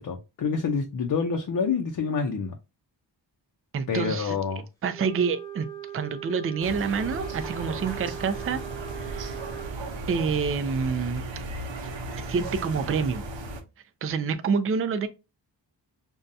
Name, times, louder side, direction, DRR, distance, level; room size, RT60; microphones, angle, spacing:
voice 1, 0.0-2.5 3.9-4.6, left 5 dB, 50° left, 0.7 m, -27 dB
voice 2, 3.7-4.4 4.8-5.7 5.9-8.6 9.0-9.4 10.1-11.2 12.1-13.2 14.0-15.1, right 5 dB, 30° right, 0.4 m, -27 dB
Wind instrument woodwind instrument, 4.9-9.8, right 9 dB, 5° left, 1.0 m, -40 dB
sound 1, 6.6-13.6, right 2 dB, 85° right, 0.8 m, -36 dB
5.3 x 2.3 x 2.6 m
wide cardioid pair, 100°, 43 cm